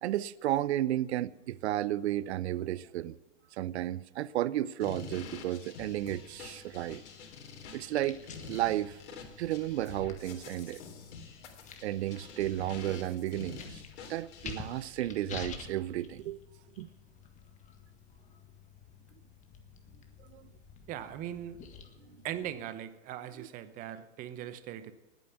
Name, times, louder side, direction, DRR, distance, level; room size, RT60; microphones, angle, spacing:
voice 1, 0.0-3.2 3.5-7.0 7.7-9.0 9.4-10.8 11.8-13.8 14.1-16.4 16.8-16.9 20.3-20.5 23.4-23.5, right 13 dB, 60° right, 0.7 m, -33 dB
sound 1, 4.8-14.9, left 6 dB, 60° left, 3.7 m, -47 dB
sound 2, 5.7-22.6, left 6 dB, 20° left, 1.6 m, -50 dB
voice 2, 20.9-21.6 22.2-24.9, right 11 dB, 20° right, 0.8 m, -40 dB
19.0 x 9.2 x 7.0 m
hypercardioid pair, 140°, 37 cm